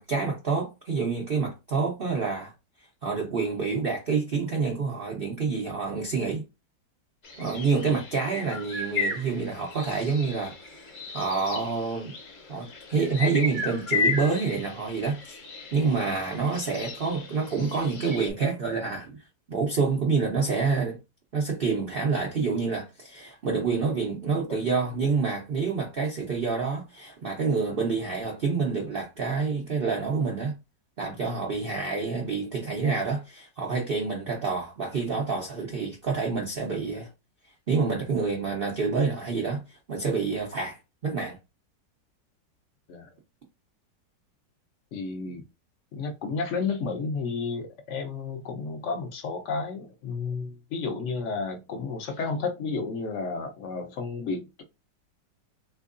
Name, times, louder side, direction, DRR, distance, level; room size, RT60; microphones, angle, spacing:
voice 1, 0.0-2.5 3.0-6.4 7.4-10.5 11.1-12.1 12.5-15.4 15.7-19.1 19.5-21.0 21.3-30.6 31.0-37.1 37.7-41.4, right 4 dB, 80° right, 0.5 m, -27 dB
sound 1, 7.2-18.3, left 4 dB, 50° left, 1.0 m, -34 dB
voice 2, 44.9-45.4 45.9-54.6, left 4 dB, 70° left, 0.7 m, -32 dB
3.5 x 3.0 x 2.4 m
omnidirectional pair, 1.9 m